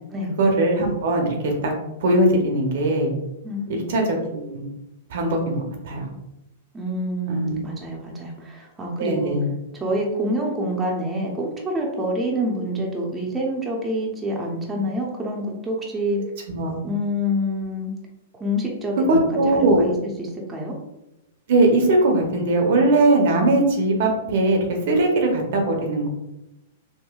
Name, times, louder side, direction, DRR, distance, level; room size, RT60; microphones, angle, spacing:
voice 1, 0.4-1.7 2.0-3.1 3.7-4.6 5.1-6.1 7.3-7.6 9.0-9.5 16.5-16.8 19.1-19.8 21.5-24.6 24.9-26.1, right 2 dB, 65° right, 2 dB, 0.7 m, -20 dB
voice 2, 3.4-3.8 6.7-9.3 9.7-16.2 16.8-17.9 18.4-20.1 20.5-20.7, equal, 15° right, -1 dB, 0.7 m, -27 dB
3.6 x 2.2 x 2.3 m, 0.91 s
hypercardioid pair, 115°, 0 cm